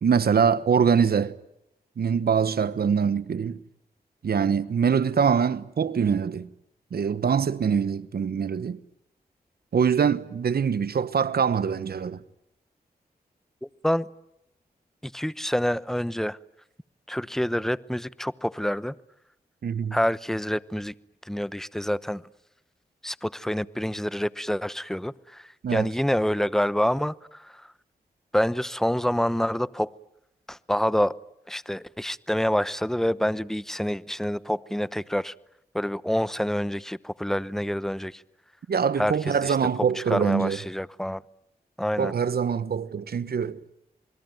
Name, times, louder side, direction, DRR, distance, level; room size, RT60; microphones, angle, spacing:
voice 1, 0.0-1.3 2.0-3.6 4.2-6.5 6.9-8.8 9.7-12.2 19.6-20.0 25.6-25.9 38.7-40.6 42.0-43.6, right 6 dB, 70° right, 1.2 m, -24 dB
voice 2, 13.6-14.1 15.0-16.4 17.1-18.9 19.9-20.9 21.2-22.2 23.0-27.7 28.3-29.9 30.5-31.2 31.5-35.3 35.7-38.2 39.0-39.6 39.9-41.2 41.8-42.1, equal, ahead, 0.9 m, -27 dB
28.0 x 21.0 x 9.2 m
cardioid pair, 50°, 17 cm